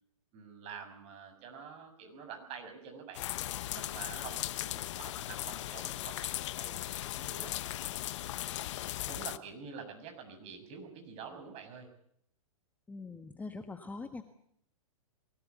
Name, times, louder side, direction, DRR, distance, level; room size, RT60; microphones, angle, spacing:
voice 1, 0.3-3.2 3.7-7.9 8.4-8.7 9.1-11.9, right 6 dB, 35° right, 6 dB, 6.7 m, -47 dB
sound 1, 3.1-9.4, left 14 dB, 55° left, 1.0 m, -38 dB
voice 2, 12.9-14.2, left 3 dB, 10° left, 8 dB, 1.4 m, -43 dB
23.5 x 17.5 x 8.3 m, 0.70 s
hypercardioid pair, 135°, 19 cm